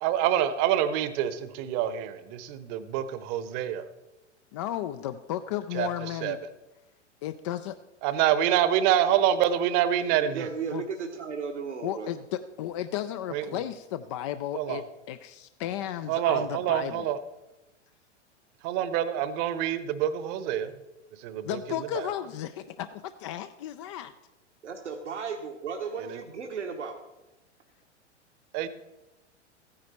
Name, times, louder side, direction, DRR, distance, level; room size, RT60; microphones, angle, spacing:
voice 1, 0.0-3.9 5.7-5.9 6.2-6.4 8.0-10.5 13.3-13.6 14.5-14.8 16.1-17.2 18.6-20.7 21.2-21.5 21.9-22.1 26.1-26.2 28.5-28.7, right 10 dB, 35° right, 1.0 m, -26 dB
voice 2, 4.5-6.4 7.2-7.8 10.7-10.8 11.8-17.2 21.4-24.1, left 12 dB, 25° left, 0.4 m, -34 dB
voice 3, 10.1-12.1 24.6-27.0, right 5 dB, 70° right, 1.3 m, -35 dB
15.0 x 9.8 x 4.2 m
figure-of-eight pair, 100°, 36 cm